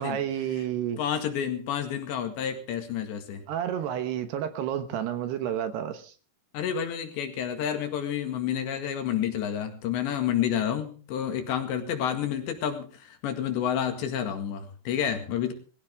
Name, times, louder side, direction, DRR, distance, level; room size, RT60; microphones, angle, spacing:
voice 1, 0.0-1.0 3.5-6.1, right 10 dB, 70° right, 3.0 m, -30 dB
voice 2, 1.0-3.4 6.5-15.5, left 9 dB, 70° left, 4.1 m, -29 dB
20.5 x 15.5 x 3.5 m
omnidirectional pair, 5.5 m